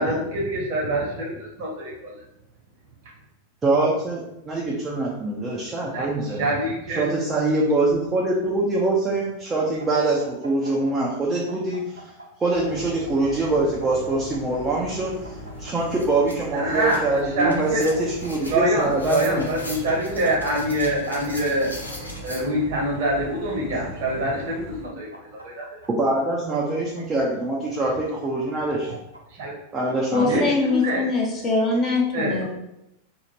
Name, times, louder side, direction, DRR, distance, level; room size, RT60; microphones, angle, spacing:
voice 1, 0.0-2.2 5.8-7.0 16.5-17.8 18.4-21.7 22.2-25.7 29.3-29.5 30.1-31.0 32.1-32.4, right 1 dB, 50° right, -3 dB, 0.9 m, -25 dB
voice 2, 3.6-6.5 7.0-12.0 12.4-15.1 15.6-19.5 25.9-28.9 29.7-30.5, right 2 dB, 15° right, -4 dB, 0.5 m, -24 dB
sound 1, 9.6-11.2 11.5-13.4 13.8-16.0 16.8-18.0 18.2-18.3 18.7-19.7 20.2-21.3 21.9-22.8 23.6-24.6 24.8-26.1 26.7-27.7 28.2-29.2, right 1 dB, 85° right, 0.4 m, -43 dB
sound 2, 12.5-24.8, equal, 55° left, 1.2 m, -40 dB
sound 3, 15.1-15.2 15.5-22.4, left 1 dB, 80° left, 0.6 m, -40 dB
voice 3, 30.1-32.5, left 3 dB, 25° left, 0 dB, 0.6 m, -22 dB
2.6 x 2.4 x 3.0 m, 0.84 s
figure-of-eight pair, 90°, 0 cm